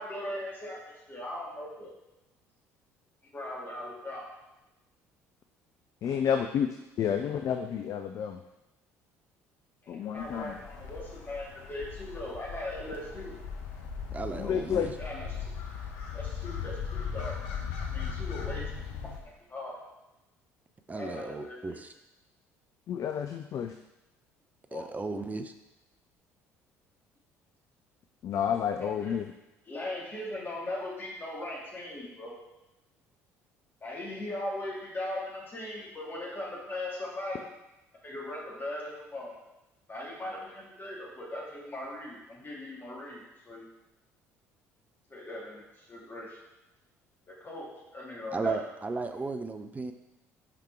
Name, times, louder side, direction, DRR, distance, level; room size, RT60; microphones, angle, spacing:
voice 1, 0.0-1.9 3.3-4.2 9.8-13.3 15.0-15.3 16.1-17.4 17.9-18.9 19.2-19.8 20.9-21.8 24.7-24.8 28.8-29.2 29.6-32.3 33.8-37.4 38.0-39.3 39.9-43.7 45.1-46.4 47.3-48.6, left 1 dB, 30° left, -4 dB, 2.7 m, -39 dB
voice 2, 6.0-6.7 7.0-8.4 9.9-10.5 14.4-14.9 22.9-23.7 28.2-29.2, left 8 dB, 45° left, 6 dB, 0.5 m, -30 dB
sound 1, 10.2-19.2, left 6 dB, 65° left, 1.0 m, -38 dB
voice 3, 14.1-14.9 20.9-21.9 24.7-25.5 48.3-49.9, right 3 dB, 20° right, 8 dB, 0.7 m, -35 dB
5.9 x 5.1 x 4.6 m, 0.97 s
figure-of-eight pair, 55°, 8 cm